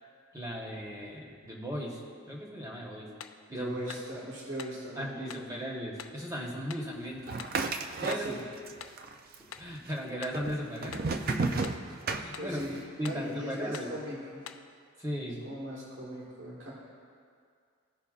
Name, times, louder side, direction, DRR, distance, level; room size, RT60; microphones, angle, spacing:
voice 1, 0.3-2.0 2.3-3.1 3.5-3.7 5.0-7.4 8.0-8.4 9.6-11.4 12.2-12.6 13.0-13.9 15.0-15.4, equal, 15° right, -3 dB, 1.1 m, -37 dB
sound 1, 3.2-3.4 3.9-4.1 4.6-4.8 5.3-5.5 6.0-6.2 6.7-6.9 7.4-7.6 8.1-8.3 8.8-9.0 9.5-9.7 10.2-10.5 10.9-11.1 11.6-11.9 12.3-12.5 13.0-13.3 13.7-14.0 14.5-14.7, left 8 dB, 85° left, 0.4 m, -46 dB
voice 2, 3.5-5.6 8.1-8.4 12.4-14.5 15.4-16.7, equal, 65° right, -5 dB, 1.6 m, -39 dB
sound 2, 7.3-8.7 9.0-9.7 10.3-12.8, right 3 dB, 45° right, 0.4 m, -32 dB
15.5 x 5.4 x 2.4 m, 2.2 s
head